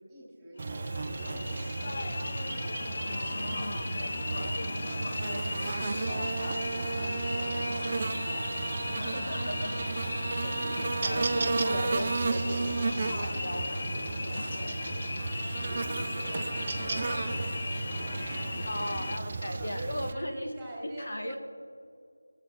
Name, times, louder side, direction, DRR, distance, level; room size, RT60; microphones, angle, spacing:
voice 1, 0.0-2.1 4.6-5.6 6.1-8.7 9.7-10.3 15.6-21.4, right 1 dB, 10° right, -5 dB, 2.2 m, -46 dB
sound 1, 0.6-19.2, left 3 dB, 40° left, 0.4 m, -37 dB
Buzz, 0.6-20.1, right 3 dB, 30° right, 0.4 m, -33 dB
voice 2, 3.0-4.1 5.2-5.4 6.0-6.6 9.0-9.7 10.6-14.9 18.6-20.5 21.0-21.4, left 1 dB, 70° left, 7 dB, 1.4 m, -38 dB
20.0 x 7.4 x 4.4 m, 2.3 s
figure-of-eight pair, 170°, 0 cm